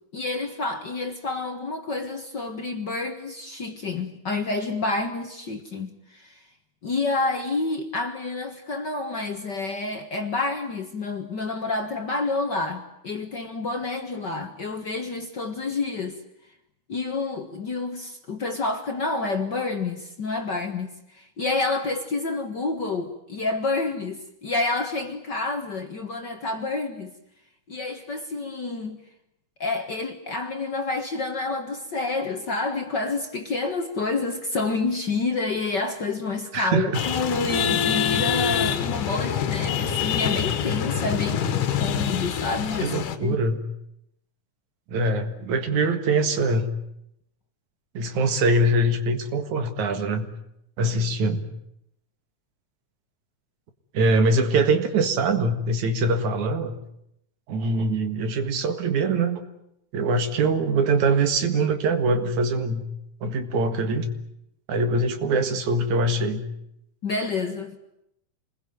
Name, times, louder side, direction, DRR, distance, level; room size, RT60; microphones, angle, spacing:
voice 1, 0.1-6.4 6.8-16.2 16.9-27.1 27.7-29.0 29.6-43.4 67.0-67.8, left 3 dB, 45° left, 1.7 m, -29 dB
voice 2, 36.5-37.0 42.8-43.6 44.9-46.7 47.9-50.3 50.8-51.4 53.9-56.8 57.5-59.4 59.9-62.8 63.2-64.1 64.7-66.4, right 2 dB, 70° right, 3.1 m, -23 dB
sound 1, 36.9-43.2, left 8 dB, 80° left, 3.0 m, -25 dB
27.5 x 21.0 x 9.3 m
omnidirectional pair, 3.6 m